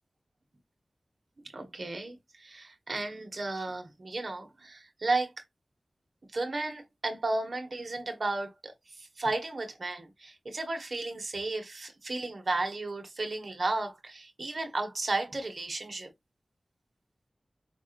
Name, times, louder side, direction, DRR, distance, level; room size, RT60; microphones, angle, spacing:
voice 1, 1.5-5.3 6.3-16.1, right 2 dB, 60° right, 1.6 m, -34 dB
5.6 x 3.6 x 2.5 m
cardioid pair, 50°, 0 cm